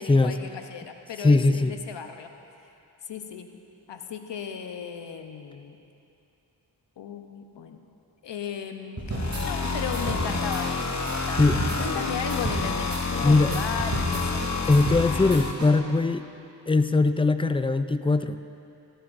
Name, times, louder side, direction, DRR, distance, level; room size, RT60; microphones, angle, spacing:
voice 1, 0.0-2.3 3.0-3.6 3.9-5.8 7.0-7.8 8.2-9.0 9.4-11.4 11.8-14.4, left 7 dB, 85° left, 6 dB, 0.9 m, -36 dB
voice 2, 1.2-1.7 11.4-11.6 13.2-13.5 14.6-16.3 16.7-18.4, left 3 dB, 15° left, 11 dB, 0.4 m, -21 dB
sound 1, 9.0-15.7, right 1 dB, 40° right, 2.8 m, -32 dB
sound 2, 9.1-15.5, left 4 dB, 40° left, 1.1 m, -29 dB
17.5 x 14.5 x 2.6 m, 2.8 s
cardioid pair, 60°, 42 cm